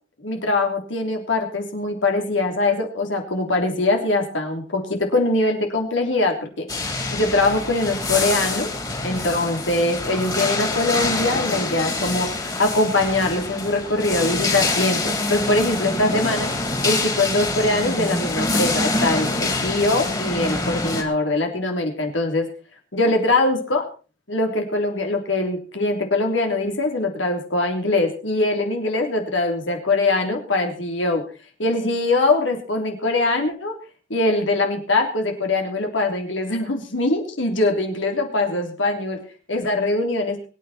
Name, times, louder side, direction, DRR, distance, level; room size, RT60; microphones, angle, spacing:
voice 1, 0.2-6.7 7.1-8.7 9.0-16.5 16.8-22.5 22.9-23.9 24.3-31.2 31.6-33.8 34.1-39.2 39.5-40.4, left 2 dB, 80° left, 3 dB, 3.5 m, -22 dB
sound 1, 6.7-21.0, left 2 dB, 20° left, 3.2 m, -25 dB
23.5 x 9.4 x 4.4 m, 0.36 s
head